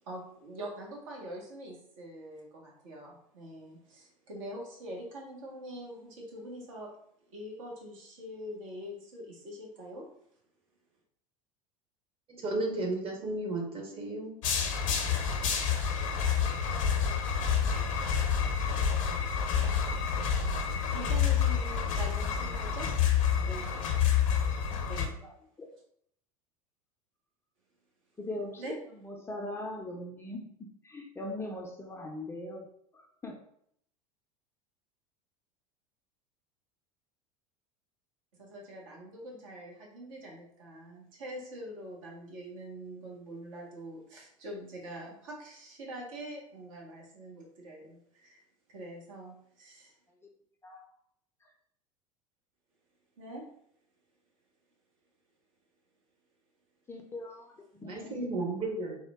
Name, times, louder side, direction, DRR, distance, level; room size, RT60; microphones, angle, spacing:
voice 1, 0.0-6.9 7.3-10.1 20.9-22.9 23.4-23.8 24.8-25.3 28.6-28.7 38.4-48.4 48.7-49.9 53.2-53.5, right 1 dB, 65° right, -2 dB, 1.2 m, -44 dB
voice 2, 12.4-14.3 57.8-59.0, right 2 dB, 30° right, 0 dB, 1.0 m, -33 dB
sound 1, 14.4-25.1, left 7 dB, 60° left, 0.7 m, -28 dB
voice 3, 16.6-16.9 24.5-24.9 25.2-25.3 28.2-30.5 30.8-32.7 32.9-33.4 50.6-50.8 51.4-51.5 56.9-58.2, left 1 dB, 15° left, 1 dB, 0.5 m, -41 dB
3.6 x 2.2 x 3.4 m, 0.69 s
figure-of-eight pair, 80°, 18 cm